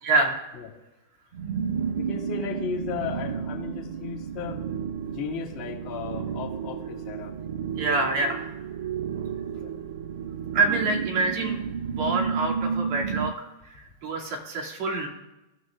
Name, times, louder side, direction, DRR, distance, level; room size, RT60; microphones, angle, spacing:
voice 1, 0.0-0.4 7.8-8.5 10.5-11.6 11.9-13.3 13.7-15.1, right 3 dB, 50° right, 0 dB, 2.6 m, -26 dB
sound 1, 1.3-13.3, right 7 dB, 70° right, 0.4 m, -32 dB
voice 2, 1.9-4.6 5.1-7.3 9.5-9.7, left 7 dB, 30° left, -5 dB, 2.0 m, -35 dB
16.0 x 6.1 x 2.5 m, 0.99 s
supercardioid pair, 145°, 0 cm